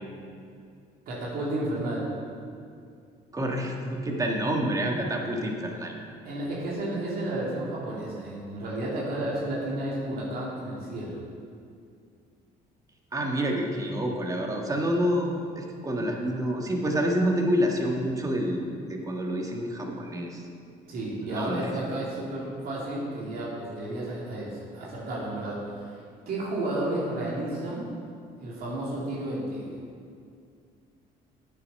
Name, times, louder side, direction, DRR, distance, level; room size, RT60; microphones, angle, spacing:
voice 1, 1.1-2.1 6.2-11.2 20.9-25.9 26.3-27.9 28.4-29.8, right 1 dB, 65° right, -5 dB, 2.8 m, -32 dB
voice 2, 3.3-5.9 13.1-15.3 15.5-18.6 18.9-20.4 21.3-21.7, equal, 20° right, 1 dB, 1.5 m, -28 dB
8.6 x 8.3 x 5.5 m, 2.3 s
cardioid pair, 110°, 17 cm